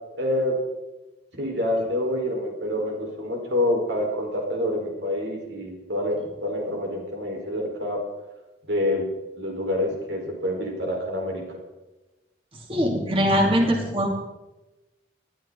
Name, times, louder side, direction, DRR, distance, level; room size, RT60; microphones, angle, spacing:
voice 1, 0.1-0.6 1.3-8.0 8.7-9.1 9.3-11.6, left 1 dB, 80° right, 1 dB, 4.5 m, -27 dB
voice 2, 12.7-14.1, equal, 30° right, 0 dB, 2.8 m, -21 dB
20.5 x 13.0 x 4.0 m, 1.0 s
head